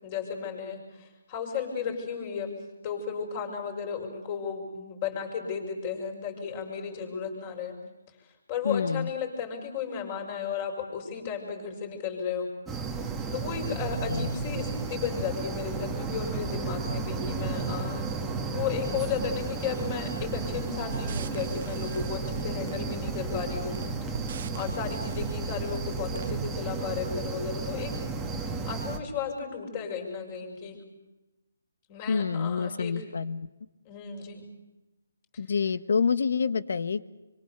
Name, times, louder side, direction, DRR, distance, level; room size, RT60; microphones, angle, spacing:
voice 1, 0.0-7.8 8.5-12.5 13.3-18.1 18.5-27.9 28.4-30.8 31.9-33.0 33.8-34.4 35.3-35.4, left 6 dB, 25° left, 2 dB, 6.4 m, -34 dB
voice 2, 8.6-9.1 14.1-14.3 32.1-33.5 35.4-37.0, left 5 dB, 65° left, 14 dB, 1.4 m, -27 dB
sound 1, 12.7-29.0, right 4 dB, 10° right, 2.0 m, -33 dB
sound 2, 20.9-26.5, right 7 dB, 45° right, 0.9 m, -39 dB
27.0 x 25.0 x 7.0 m, 1.1 s
hypercardioid pair, 165°, 0 cm